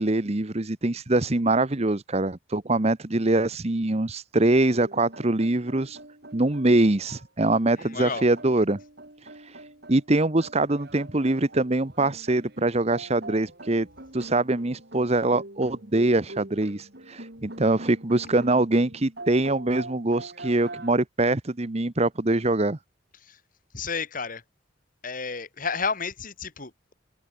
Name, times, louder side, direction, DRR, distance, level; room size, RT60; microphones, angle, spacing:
voice 1, 0.0-6.0 6.3-8.8 9.9-13.9 14.1-22.8, right 2 dB, 35° right, 1.0 m, -23 dB
sound 1, 4.4-20.9, right 2 dB, 55° right, 6.2 m, -43 dB
voice 2, 7.9-8.2 23.7-24.4 25.0-26.9, left 5 dB, 45° left, 2.6 m, -31 dB
open air
head